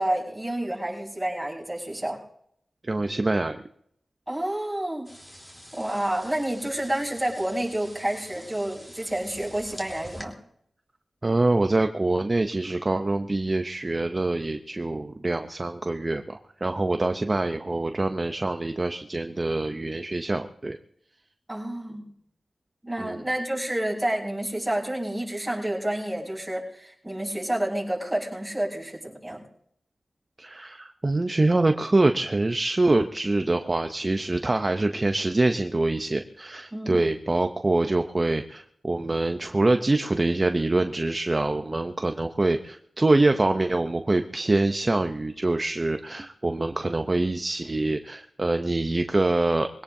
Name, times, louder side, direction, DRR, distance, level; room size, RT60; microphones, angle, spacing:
voice 1, 0.0-2.2 4.3-5.1 5.7-10.4 21.5-22.1 22.8-29.4 36.7-37.1, right 1 dB, 10° right, -4 dB, 5.8 m, -29 dB
voice 2, 2.8-3.6 11.2-20.8 23.0-23.2 30.4-49.7, right 2 dB, 30° right, 7 dB, 0.7 m, -25 dB
sound 1, 5.0-10.2, equal, 10° left, 3.4 m, -46 dB
23.0 x 17.0 x 2.7 m, 0.69 s
wide cardioid pair, 70°, 0 cm